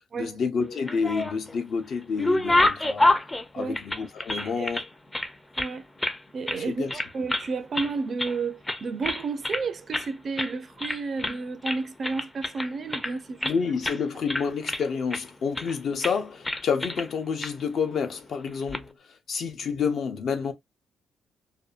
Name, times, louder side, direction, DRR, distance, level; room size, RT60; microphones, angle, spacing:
voice 1, 0.2-3.1 3.5-4.9 6.6-6.9 13.4-18.9 19.3-20.5, left 5 dB, 60° left, 0.6 m, -29 dB
sound 1, 0.7-1.6 1.9-4.9 5.1-6.2 6.5-6.6 6.9-7.5 7.7-8.4 8.7-9.6 9.9-10.1 10.4-10.5 10.8-11.4 11.6-13.6 13.8-14.0 14.3-15.2 15.5-15.7 16.0-16.2 16.4-17.1 17.4-17.5 18.5-18.8, left 2 dB, 15° left, 0.4 m, -27 dB
voice 2, 4.3-4.8 5.6-5.8 6.3-13.5, right 4 dB, 45° right, 0.4 m, -32 dB
2.6 x 2.2 x 2.4 m
cardioid pair, 90°, 0 cm